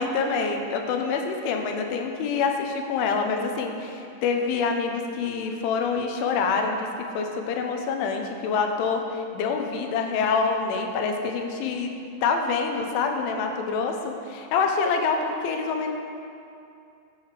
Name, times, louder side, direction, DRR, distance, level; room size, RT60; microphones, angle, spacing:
voice 1, 0.0-6.9 7.1-11.9 12.2-15.9, left 5 dB, 80° left, 4 dB, 3.3 m, -26 dB
12.5 x 7.8 x 6.6 m, 2.5 s
omnidirectional pair, 5.8 m